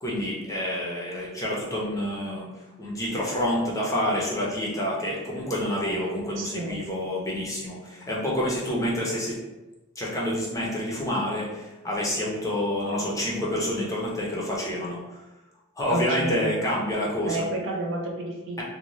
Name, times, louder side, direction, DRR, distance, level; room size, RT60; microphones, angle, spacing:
voice 1, 0.0-2.5 2.8-9.4 10.0-15.0 15.8-17.5, left 1 dB, 15° left, -5 dB, 0.5 m, -28 dB
voice 2, 6.4-6.8 15.9-16.5 17.2-18.6, right 2 dB, 60° right, -1 dB, 0.5 m, -30 dB
2.6 x 2.1 x 2.9 m, 1.1 s
head